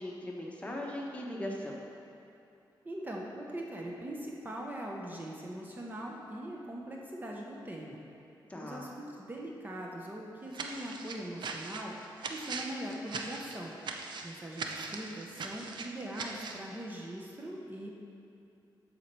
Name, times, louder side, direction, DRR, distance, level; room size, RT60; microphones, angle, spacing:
voice 1, 0.0-1.8 8.5-8.8, left 1 dB, 15° left, -2 dB, 1.0 m, -39 dB
voice 2, 2.8-8.0 8.6-11.9 12.3-13.7 14.2-17.9, right 1 dB, 20° right, -2 dB, 0.8 m, -41 dB
sound 1, 10.5-16.7, right 4 dB, 65° right, 0.6 m, -40 dB
7.2 x 4.4 x 6.7 m, 2.8 s
wide cardioid pair, 115°, 8 cm